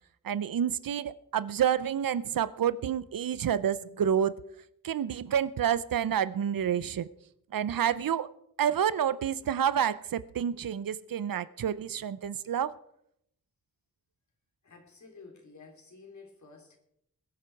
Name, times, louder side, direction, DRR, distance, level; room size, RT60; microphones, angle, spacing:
voice 1, 0.2-4.4 4.8-7.1 7.5-8.3 8.6-12.7, right 9 dB, 85° right, 17 dB, 0.6 m, -29 dB
voice 2, 14.6-16.8, left 4 dB, 60° left, 3 dB, 3.3 m, -51 dB
21.5 x 7.7 x 4.6 m, 0.74 s
wide cardioid pair, 95°, 33 cm